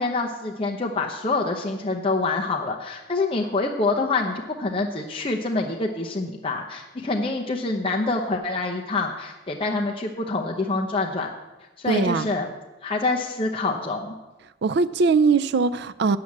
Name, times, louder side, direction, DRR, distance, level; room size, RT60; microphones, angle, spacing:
voice 1, 0.0-11.3 11.8-12.5 12.8-14.2, left 3 dB, 30° left, 0 dB, 0.8 m, -26 dB
voice 2, 11.9-12.3 14.6-16.2, right 4 dB, 60° right, 15 dB, 0.4 m, -21 dB
8.4 x 7.7 x 8.6 m, 1.1 s
head